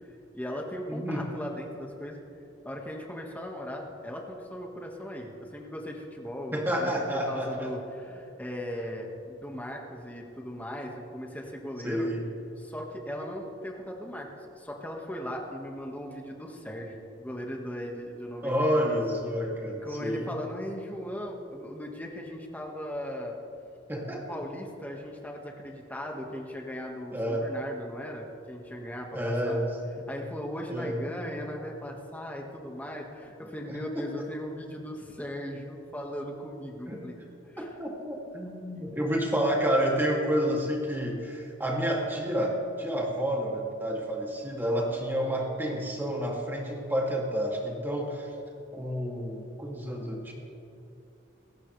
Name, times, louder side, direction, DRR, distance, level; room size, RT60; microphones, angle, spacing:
voice 1, 0.3-2.2 2.6-6.9 7.3-12.1 12.6-18.5 18.8-19.0 19.8-23.4 24.1-29.6 30.1-37.2 37.5-37.7 38.8-38.9, equal, 10° left, 0 dB, 1.7 m, -38 dB
voice 2, 0.9-1.2 6.5-7.7 11.8-12.2 18.4-20.3 23.9-24.4 27.1-27.4 29.1-29.7 30.7-31.0 33.7-34.3 36.9-37.0 37.6-48.3 48.7-50.3, equal, 10° right, -2 dB, 2.6 m, -29 dB
27.0 x 14.5 x 3.4 m, 2.8 s
head